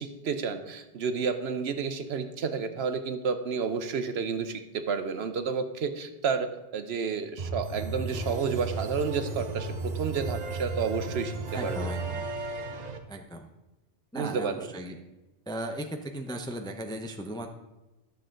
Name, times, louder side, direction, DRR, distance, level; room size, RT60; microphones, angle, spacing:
voice 1, 0.0-11.9 14.1-14.7, right 5 dB, 65° right, 9 dB, 1.0 m, -31 dB
sound 1, 7.4-13.0, right 3 dB, 40° right, 0.8 m, -34 dB
voice 2, 11.5-12.3 13.1-13.4 14.1-15.0 15.5-17.5, right 1 dB, 5° left, 4 dB, 0.5 m, -37 dB
12.0 x 6.9 x 3.8 m, 1.0 s
omnidirectional pair, 1.2 m